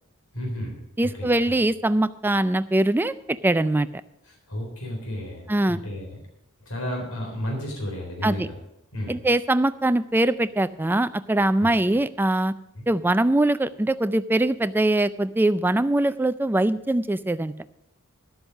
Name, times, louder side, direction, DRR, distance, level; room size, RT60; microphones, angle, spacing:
voice 1, 0.3-0.8 1.0-1.6 4.5-6.1 6.7-8.6 8.9-9.2 11.6-11.7 12.7-12.8, left 1 dB, 75° left, 0 dB, 3.8 m, -32 dB
voice 2, 1.0-3.9 5.5-5.8 8.2-8.5 9.1-12.5 12.9-17.5, right 1 dB, 10° right, 13 dB, 0.3 m, -22 dB
11.5 x 8.0 x 6.3 m, 0.82 s
head